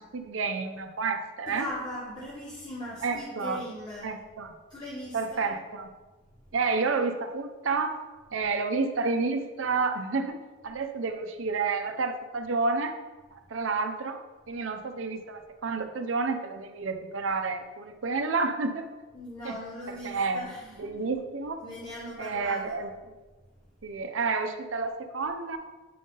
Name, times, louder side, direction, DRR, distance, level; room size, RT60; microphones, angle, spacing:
voice 1, 0.0-1.7 3.0-3.6 4.0-4.5 5.1-5.9 6.5-8.0 8.3-10.4 10.6-13.0 13.3-14.2 14.5-18.9 19.4-19.5 20.0-20.5 20.8-21.6 22.2-22.9 23.8-25.6, right 4 dB, 85° right, 7 dB, 0.6 m, -30 dB
voice 2, 1.5-4.2 4.7-5.6 6.3-6.5 19.1-21.0 21.6-22.8 23.4-24.0, left 1 dB, 20° left, -5 dB, 0.9 m, -40 dB
8.4 x 3.9 x 3.8 m, 1.3 s
head